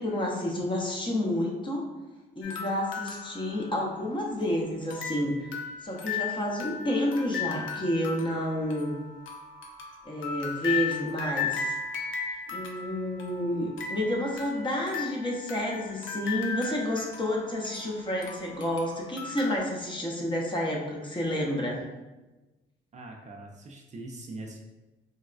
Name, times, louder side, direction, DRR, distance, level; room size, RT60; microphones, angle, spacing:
voice 1, 0.0-1.8 2.4-5.5 5.8-8.9 10.0-11.8 12.5-21.8, left 1 dB, 25° left, -1 dB, 0.7 m, -30 dB
sound 1, 2.4-4.4 4.9-19.6, left 6 dB, 75° left, 0.5 m, -36 dB
voice 2, 22.9-24.6, right 2 dB, 35° right, 0 dB, 0.4 m, -42 dB
4.0 x 2.1 x 2.4 m, 1.1 s
cardioid pair, 90°, 20 cm